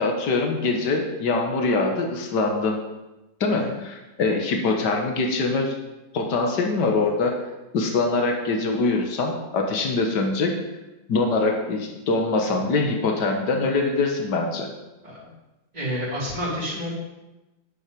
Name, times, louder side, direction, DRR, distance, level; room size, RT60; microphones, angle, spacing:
voice 1, 0.0-2.8 3.4-5.7 6.1-7.3 7.7-10.6 11.1-14.7, left 3 dB, 65° left, 3 dB, 2.1 m, -23 dB
voice 2, 15.7-16.9, equal, 20° right, -8 dB, 3.2 m, -29 dB
9.9 x 9.4 x 5.3 m, 1.0 s
omnidirectional pair, 2.0 m